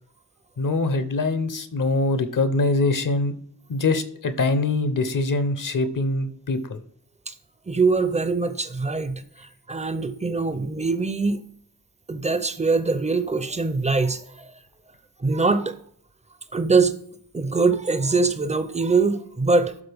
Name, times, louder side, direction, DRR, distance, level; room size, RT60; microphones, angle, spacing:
voice 1, 0.6-3.3 3.7-6.8, left 2 dB, 55° left, 11 dB, 0.7 m, -23 dB
voice 2, 7.7-11.4 12.1-14.5 15.2-15.8 16.5-17.0 17.3-19.8, right 4 dB, 20° right, 11 dB, 0.5 m, -23 dB
12.0 x 4.1 x 3.4 m, 0.62 s
wide cardioid pair, 120°, 39 cm